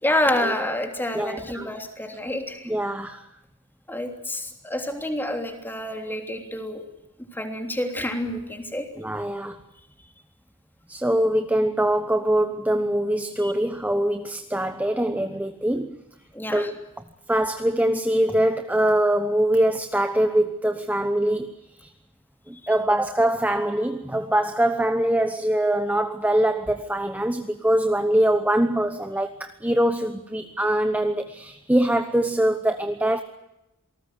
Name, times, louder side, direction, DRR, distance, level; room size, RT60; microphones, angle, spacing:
voice 1, 0.0-2.7 3.9-6.9 7.3-8.9 13.4-13.5 16.3-16.7, left 1 dB, 10° left, 5 dB, 3.2 m, -28 dB
voice 2, 1.1-1.7 2.6-3.2 9.0-9.6 10.9-16.0 16.5-16.7 17.3-21.9 22.5-33.2, right 1 dB, 5° right, 8 dB, 1.0 m, -23 dB
27.5 x 19.5 x 8.1 m, 0.92 s
head